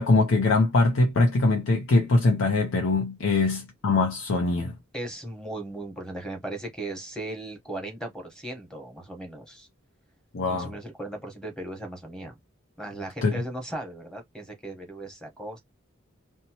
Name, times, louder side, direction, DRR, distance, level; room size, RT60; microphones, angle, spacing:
voice 1, 0.0-4.7 10.3-10.7 13.2-13.3, left 3 dB, 90° left, 0.6 m, -22 dB
voice 2, 4.9-9.7 10.5-12.3 12.8-15.6, right 1 dB, 5° left, 1.0 m, -37 dB
2.7 x 2.1 x 2.8 m
head